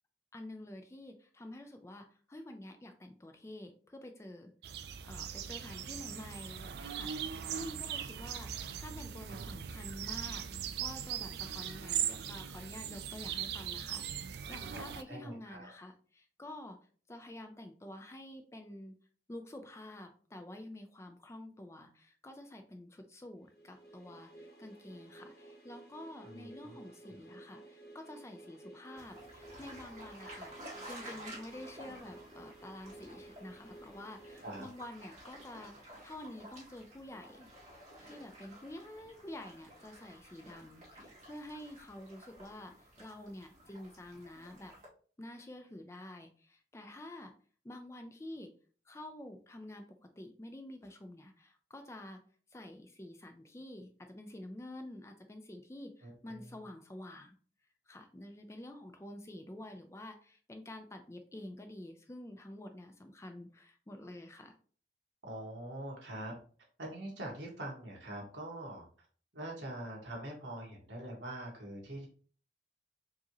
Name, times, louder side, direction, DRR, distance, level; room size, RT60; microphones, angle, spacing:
voice 1, 0.3-4.5 5.0-16.8 17.1-18.9 19.3-30.6 30.8-35.7 36.0-37.5 38.0-44.7 45.2-47.3 47.6-48.5 48.9-49.9 50.2-52.2 52.5-57.4 57.9-64.5, left 1 dB, 15° left, 6 dB, 0.4 m, -48 dB
sound 1, 4.6-15.0, right 9 dB, 60° right, 0.3 m, -39 dB
voice 2, 14.7-15.7 26.2-26.9 34.4-34.7 56.0-56.6 65.2-66.3 66.8-68.8 69.3-72.1, right 1 dB, 80° right, -1 dB, 1.5 m, -44 dB
sound 2, 23.5-35.3, right 2 dB, 55° left, 1.0 m, -54 dB
sound 3, 28.9-44.9, right 1 dB, 40° right, 1.9 m, -53 dB
4.6 x 2.8 x 2.9 m, 0.43 s
head